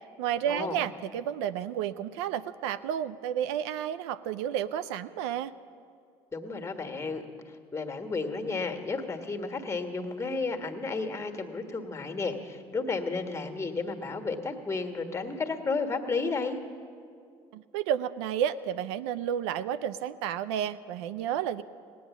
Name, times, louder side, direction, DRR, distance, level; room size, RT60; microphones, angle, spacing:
voice 1, 0.2-5.5 17.5-21.6, right 9 dB, 75° right, 13 dB, 0.4 m, -31 dB
voice 2, 6.3-16.6, left 4 dB, 20° left, 5 dB, 1.5 m, -32 dB
17.5 x 9.3 x 7.2 m, 2.3 s
hypercardioid pair, 60°, 14 cm